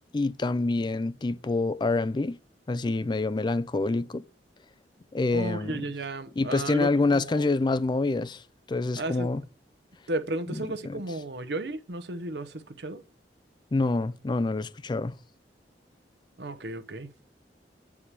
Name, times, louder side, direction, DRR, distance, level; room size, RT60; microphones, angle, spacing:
voice 1, 0.1-2.4 2.7-4.2 5.1-5.9 6.4-8.4 8.7-9.4 10.5-11.0 13.7-15.1, left 3 dB, 25° left, 0.4 m, -27 dB
voice 2, 5.3-7.5 9.0-9.3 10.1-13.0 16.4-17.1, right 2 dB, 70° right, 0.9 m, -34 dB
8.3 x 4.8 x 7.3 m
head